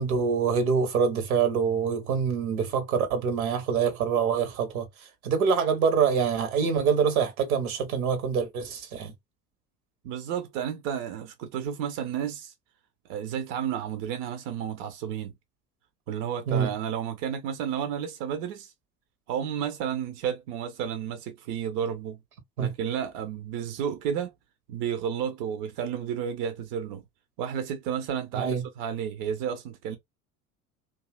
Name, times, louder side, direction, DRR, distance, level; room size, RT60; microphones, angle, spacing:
voice 1, 0.0-9.1 16.5-16.7 22.6-22.7 28.3-28.6, right 6 dB, 65° right, 0.9 m, -25 dB
voice 2, 10.0-12.5 13.1-15.3 16.1-18.7 19.3-22.2 22.6-24.3 24.7-27.0 27.4-30.0, right 8 dB, 45° right, 0.6 m, -32 dB
2.7 x 2.4 x 2.2 m
figure-of-eight pair, 70°, 46 cm